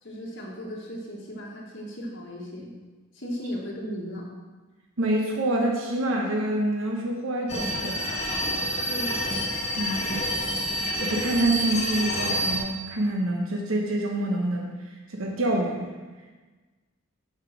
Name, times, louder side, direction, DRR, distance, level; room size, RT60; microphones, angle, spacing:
voice 1, 0.0-2.7 3.1-4.3 8.8-9.4, equal, 60° left, -3 dB, 2.0 m, -36 dB
voice 2, 5.0-8.2 9.8-10.2 11.0-14.7 15.1-15.9, right 1 dB, 75° right, 0 dB, 1.1 m, -26 dB
sound 1, 7.5-12.6, equal, 30° left, 1.5 m, -28 dB
6.8 x 5.7 x 6.3 m, 1.3 s
head